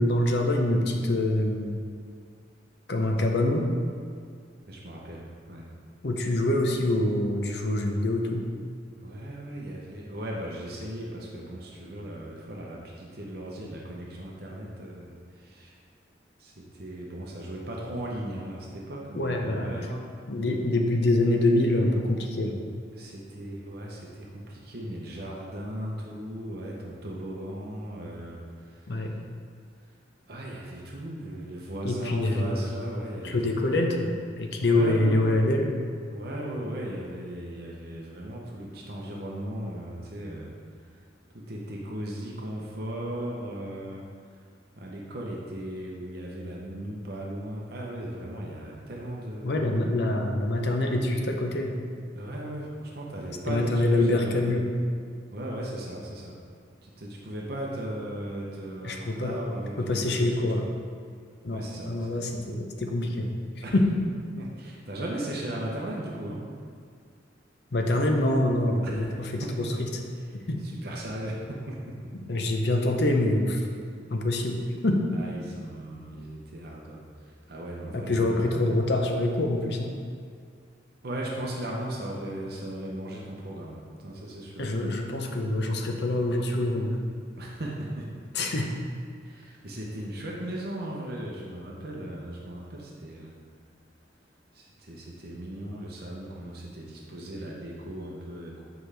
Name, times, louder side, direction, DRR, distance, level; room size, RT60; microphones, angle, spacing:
voice 1, 0.0-1.8 2.9-3.7 6.0-8.4 19.1-19.8 20.3-22.5 28.9-29.1 31.8-32.7 33.2-35.7 49.4-51.7 53.5-54.6 58.8-59.4 59.8-60.6 61.4-63.3 63.7-63.9 67.7-69.9 70.5-70.6 72.3-73.6 74.1-75.0 77.9-79.9 84.6-87.0 88.3-88.7, left 1 dB, 60° left, 3 dB, 0.7 m, -25 dB
voice 2, 4.7-5.2 5.5-5.6 9.0-15.8 16.4-20.0 22.9-28.8 30.3-33.6 34.6-35.4 36.1-40.5 41.5-44.0 44.8-49.6 52.1-54.6 55.3-56.3 56.8-60.5 61.5-62.4 63.6-63.7 64.4-66.4 68.8-69.7 70.3-70.4 70.6-72.1 75.1-77.0 77.5-78.7 81.0-84.7 87.4-88.1 89.2-93.3 94.5-98.6, right 1 dB, 55° right, -3 dB, 0.8 m, -37 dB
7.8 x 4.8 x 3.4 m, 2.1 s
head